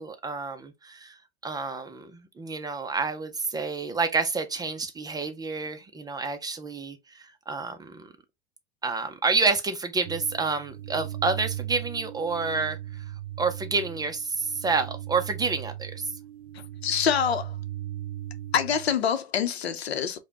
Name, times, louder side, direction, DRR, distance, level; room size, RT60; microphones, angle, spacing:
voice 1, 0.0-8.1 8.8-13.0 13.4-16.1, right 4 dB, 10° right, 0.5 m, -29 dB
sound 1, 10.0-19.0, right 13 dB, 70° right, 0.5 m, -38 dB
voice 2, 16.5-17.6 18.5-20.2, left 8 dB, 75° left, 0.7 m, -26 dB
4.9 x 2.2 x 2.7 m
figure-of-eight pair, 90°, 32 cm